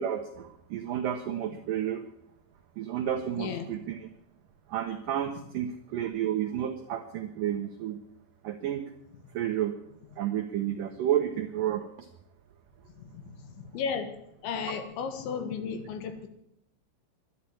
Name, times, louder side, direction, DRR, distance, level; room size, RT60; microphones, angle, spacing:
voice 1, 0.0-2.0 2.8-4.1 4.7-8.0 8.4-8.9 9.3-9.8 10.2-12.1, right 10 dB, 85° right, 6 dB, 1.9 m, -31 dB
voice 2, 13.0-14.1 14.4-16.3, left 6 dB, 85° left, 8 dB, 3.9 m, -34 dB
11.5 x 11.0 x 8.6 m, 0.77 s
omnidirectional pair, 5.2 m